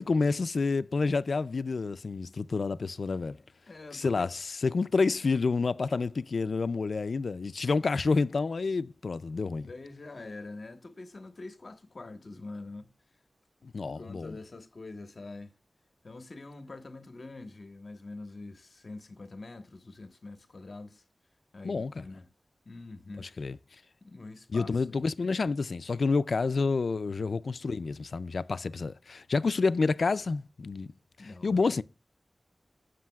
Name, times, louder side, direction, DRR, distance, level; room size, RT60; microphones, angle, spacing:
voice 1, 0.0-3.4 3.9-9.7 13.6-14.4 21.6-22.1 23.2-23.6 24.5-30.9 31.2-31.8, left 4 dB, 75° left, 0.3 m, -29 dB
voice 2, 3.3-4.3 9.6-12.9 13.9-15.5 16.0-21.0 21.5-22.3 22.6-23.5 24.0-25.0 27.1-27.3 31.2-31.6, left 2 dB, 60° left, 1.2 m, -45 dB
15.0 x 6.3 x 2.3 m
wide cardioid pair, 95°, 0 cm